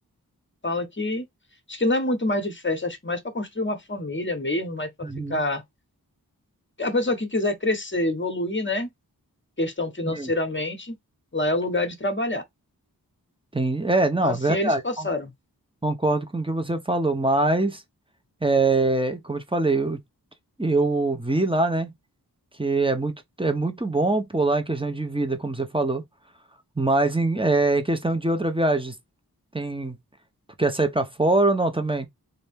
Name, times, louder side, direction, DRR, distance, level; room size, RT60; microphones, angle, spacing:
voice 1, 0.6-1.3 1.7-5.6 6.8-8.9 9.6-11.0 11.3-12.4 14.2-15.3, left 2 dB, 30° left, 1.0 m, -26 dB
voice 2, 5.0-5.3 10.1-10.3 13.5-15.1 15.8-17.8 18.4-20.0 20.6-21.9 22.6-26.0 26.8-28.9 29.5-30.0 30.6-32.1, right 2 dB, 15° right, 0.9 m, -23 dB
4.2 x 2.7 x 3.4 m
wide cardioid pair, 60°, 37 cm